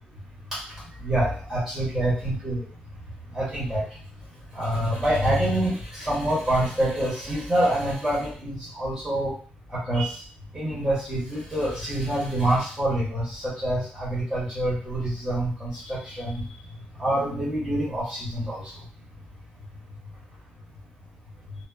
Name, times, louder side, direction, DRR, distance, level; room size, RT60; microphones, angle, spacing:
voice 1, 1.0-2.6 3.3-3.8 4.5-9.3 9.7-10.1 10.5-16.4 17.0-18.6, right 1 dB, ahead, -8 dB, 1.0 m, -26 dB
2.8 x 2.1 x 2.2 m, 0.42 s
wide cardioid pair, 165°, 3 cm